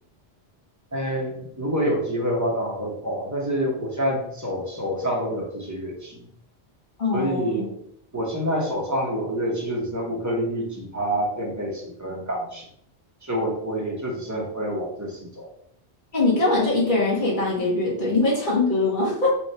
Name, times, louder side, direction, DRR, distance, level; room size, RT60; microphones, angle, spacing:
voice 1, 0.9-6.2 7.1-7.6 8.1-12.7 13.2-15.5, equal, 15° right, -2 dB, 0.8 m, -27 dB
voice 2, 7.0-7.7 16.1-19.3, left 2 dB, 45° left, -5 dB, 1.4 m, -22 dB
3.5 x 2.3 x 4.1 m, 0.70 s
omnidirectional pair, 1.1 m